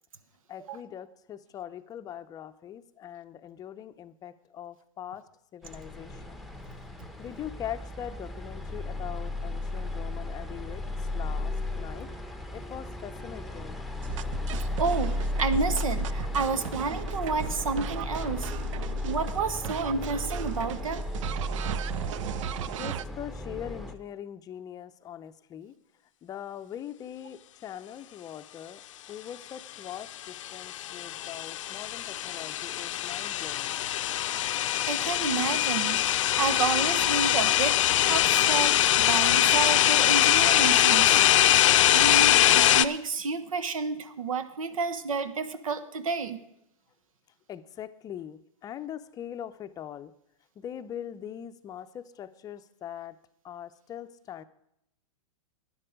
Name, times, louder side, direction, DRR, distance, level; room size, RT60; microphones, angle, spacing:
voice 1, 0.5-6.4 7.1-12.1 12.5-13.8 22.7-25.7 26.2-28.8 29.1-33.8 47.5-50.1 50.6-53.2 53.4-54.4, left 10 dB, 20° left, 10 dB, 0.6 m, -42 dB
sound 1, 5.6-23.9, left 1 dB, ahead, 0.9 m, -34 dB
sound 2, 14.0-19.4 19.6-23.0, right 11 dB, 65° right, 0.5 m, -37 dB
voice 2, 14.8-18.5 19.1-21.1 34.9-37.8 38.1-41.2 41.9-46.4, right 4 dB, 80° right, 12 dB, 1.2 m, -30 dB
sound 3, 30.3-42.8, left 13 dB, 70° left, 0.6 m, -23 dB
12.0 x 10.0 x 5.1 m, 0.78 s
hypercardioid pair, 120°, 17 cm